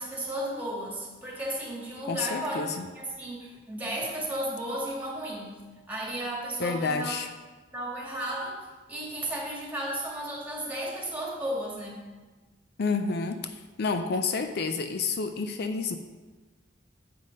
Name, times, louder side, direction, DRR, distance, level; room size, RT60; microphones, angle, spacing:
voice 1, 0.0-2.7 2.9-5.6 5.9-7.1 7.7-8.6 8.9-12.0, right 1 dB, 10° right, -3 dB, 2.0 m, -34 dB
voice 2, 2.0-2.9 4.0-4.1 6.6-7.3 12.8-16.0, left 4 dB, 60° left, 8 dB, 0.5 m, -29 dB
7.7 x 5.6 x 5.2 m, 1.3 s
head